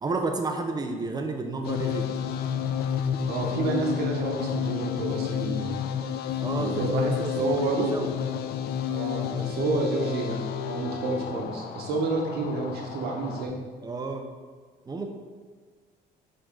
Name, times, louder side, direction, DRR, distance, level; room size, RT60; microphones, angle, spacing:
voice 1, 0.0-2.1 6.4-8.1 13.8-14.3 14.9-15.1, right 3 dB, 25° right, 4 dB, 0.7 m, -31 dB
sound 1, 1.6-13.5, left 8 dB, 70° left, 0.4 m, -31 dB
voice 2, 3.2-5.8 6.5-8.0 8.9-13.6, right 3 dB, 75° right, 0 dB, 1.2 m, -29 dB
7.4 x 3.8 x 3.8 m, 1.5 s
cardioid pair, 110°, 17 cm